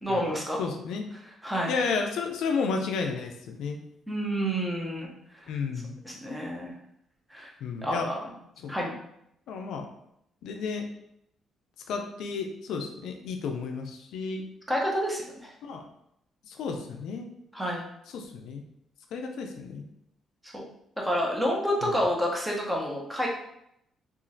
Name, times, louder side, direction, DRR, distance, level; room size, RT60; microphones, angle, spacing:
voice 1, 0.0-0.6 1.4-1.8 4.1-5.1 5.4-5.5 6.0-6.7 7.3-7.5 7.8-8.2 8.7-9.0 14.7-15.5 17.5-17.9 20.4-20.6 21.0-23.3, equal, 5° right, -2 dB, 0.7 m, -29 dB
voice 2, 0.6-1.1 1.7-3.8 5.5-5.9 7.6-8.1 8.6-8.7 9.5-9.9 10.4-10.9 11.9-14.4 15.6-15.8 16.5-17.3 18.1-18.6 19.1-19.8 21.8-21.9, left 5 dB, 80° left, 4 dB, 0.4 m, -32 dB
2.9 x 2.4 x 2.6 m, 0.76 s
cardioid pair, 90°, 0 cm